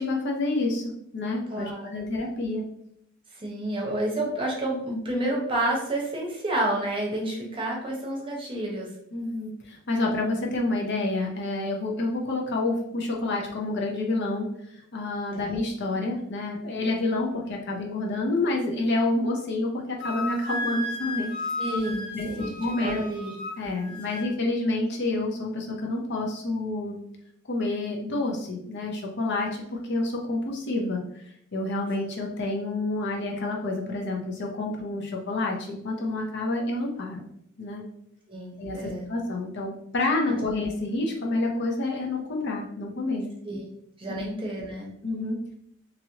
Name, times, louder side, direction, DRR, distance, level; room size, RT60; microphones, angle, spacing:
voice 1, 0.0-2.6 9.1-14.5 14.9-21.3 22.1-23.0 23.6-27.0 27.5-31.0 31.5-37.2 37.6-37.8 38.6-43.3 44.1-44.3 45.0-45.5, left 2 dB, 55° left, 0 dB, 0.6 m, -28 dB
voice 2, 1.5-2.1 3.3-8.9 15.3-15.5 21.6-23.3 38.3-39.1 40.3-40.4 43.4-43.7 44.0-44.9, right 1 dB, 25° right, -2 dB, 0.7 m, -30 dB
Wind instrument woodwind instrument, 20.0-24.3, left 2 dB, 20° left, 1.2 m, -34 dB
2.9 x 2.7 x 2.8 m, 0.73 s
head